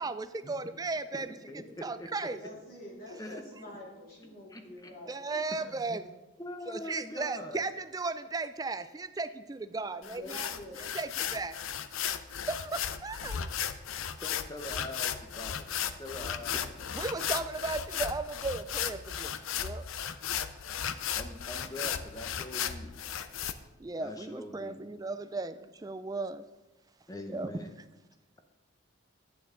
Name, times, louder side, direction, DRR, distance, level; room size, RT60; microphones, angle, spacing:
voice 1, 0.0-1.4 1.8-2.4 5.1-6.0 6.7-10.5 10.8-11.6 12.5-13.5 16.9-19.3 19.6-19.9 23.8-26.4 27.3-27.6, right 3 dB, 20° right, 12 dB, 0.3 m, -36 dB
voice 2, 1.1-2.1 3.2-3.4 3.7-3.8 4.5-4.9 5.7-6.0 6.4-7.7 14.2-16.9 21.1-23.0 24.0-25.0 27.1-27.8, left 1 dB, 15° left, 6 dB, 0.8 m, -43 dB
voice 3, 2.4-5.4 9.9-10.8, left 1 dB, 45° left, -4 dB, 2.7 m, -47 dB
sound 1, 10.0-23.5, left 9 dB, 75° left, 0.5 m, -35 dB
11.0 x 8.8 x 3.7 m, 1.1 s
head